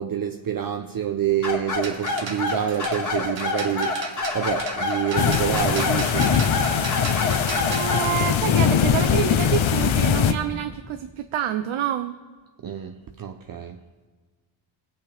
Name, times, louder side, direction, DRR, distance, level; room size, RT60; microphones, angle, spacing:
voice 1, 0.0-6.5 12.6-13.8, right 9 dB, 45° right, 0.6 m, -27 dB
sound 1, 1.4-8.1, left 3 dB, 40° left, 2.0 m, -27 dB
sound 2, 1.7-7.9, right 4 dB, 65° right, 1.4 m, -36 dB
sound 3, 5.2-10.3, left 8 dB, 70° left, 0.8 m, -21 dB
voice 2, 7.3-12.2, right 11 dB, 80° right, 0.7 m, -28 dB
19.5 x 8.4 x 3.4 m
cardioid pair, 90°, 48 cm